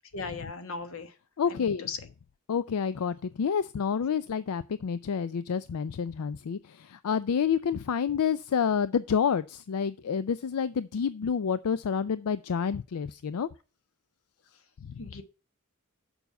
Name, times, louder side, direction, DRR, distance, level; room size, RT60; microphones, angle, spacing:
voice 1, 0.1-1.1 1.5-2.0 15.0-15.2, left 4 dB, 65° left, 1.2 m, -37 dB
voice 2, 1.4-1.9 2.5-13.5 15.0-15.1, left 6 dB, 85° left, 0.4 m, -29 dB
7.0 x 5.6 x 7.0 m
head